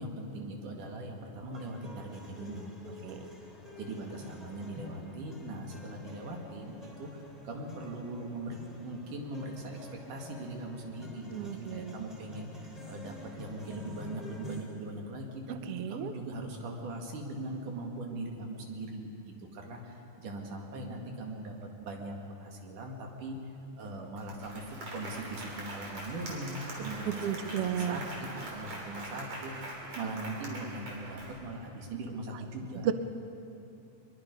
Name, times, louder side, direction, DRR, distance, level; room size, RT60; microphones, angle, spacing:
voice 1, 0.0-3.2 3.7-9.8 10.1-21.5 21.8-23.4 23.8-28.0 28.3-32.9, right 2 dB, 70° right, 1 dB, 3.5 m, -40 dB
sound 1, 1.5-14.6, left 2 dB, ahead, 2.9 m, -49 dB
voice 2, 11.3-11.9 15.5-16.1 27.1-28.0 32.8-32.9, right 9 dB, 90° right, 9 dB, 1.3 m, -33 dB
Applause, 23.8-23.9 24.2-31.7, right 1 dB, 45° right, 4.0 m, -43 dB
23.5 x 22.0 x 5.3 m, 2.7 s
omnidirectional pair, 3.9 m